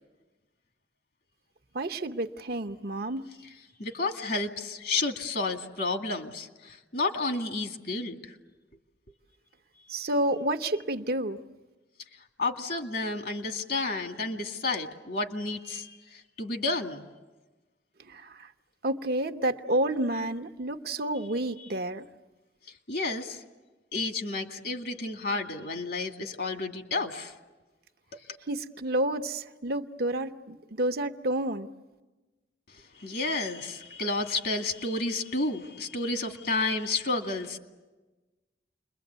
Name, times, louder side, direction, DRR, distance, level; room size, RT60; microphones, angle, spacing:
voice 1, 1.7-3.2 9.9-11.4 18.1-18.3 18.8-22.1 28.5-31.7, right 1 dB, 60° right, 8 dB, 0.9 m, -30 dB
voice 2, 3.8-8.3 12.4-17.1 22.9-23.4 23.9-27.3 28.1-28.2 33.0-37.6, left 3 dB, 60° left, 4 dB, 2.2 m, -31 dB
29.5 x 22.5 x 8.2 m, 1.2 s
head